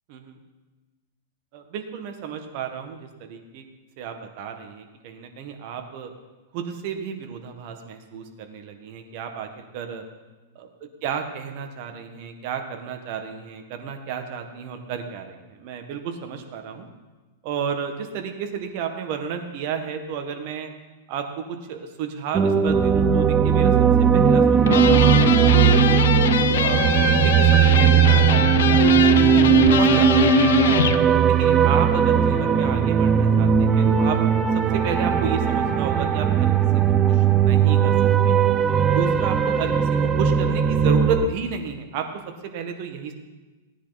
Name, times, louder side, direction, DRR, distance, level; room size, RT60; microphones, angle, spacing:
voice 1, 1.5-3.6 4.0-6.1 6.5-10.0 10.5-10.7 11.0-16.9 17.4-20.7 21.1-23.7 24.1-26.0 26.6-27.1 27.5-30.8 31.3-34.2 34.7-36.5 37.0-38.5 38.9-39.7 40.0-42.0 42.5-43.1, right 6 dB, 45° right, 5 dB, 1.6 m, -32 dB
sound 1, 22.3-41.3, right 8 dB, 15° right, 0.6 m, -18 dB
sound 2, 24.7-31.0, left 8 dB, 80° left, 0.8 m, -22 dB
17.5 x 10.0 x 4.2 m, 1.2 s
supercardioid pair, 160°, 0 cm